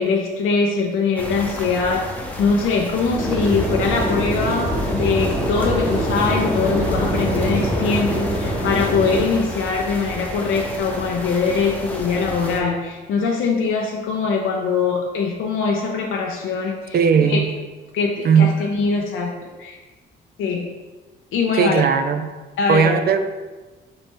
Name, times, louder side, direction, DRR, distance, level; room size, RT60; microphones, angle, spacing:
voice 1, 0.0-17.4 17.9-19.8 20.4-20.7 21.3-21.8 22.6-23.0, left 4 dB, 75° left, 0 dB, 0.6 m, -22 dB
sound 1, 1.2-12.6, left 1 dB, 5° left, 0.8 m, -32 dB
sound 2, 3.1-9.2, right 1 dB, 15° right, 1.1 m, -24 dB
voice 2, 16.9-17.5 18.2-18.5 21.6-22.2 22.7-23.2, right 6 dB, 50° right, 9 dB, 0.4 m, -17 dB
4.0 x 3.3 x 3.7 m, 1.3 s
cardioid pair, 75°, 21 cm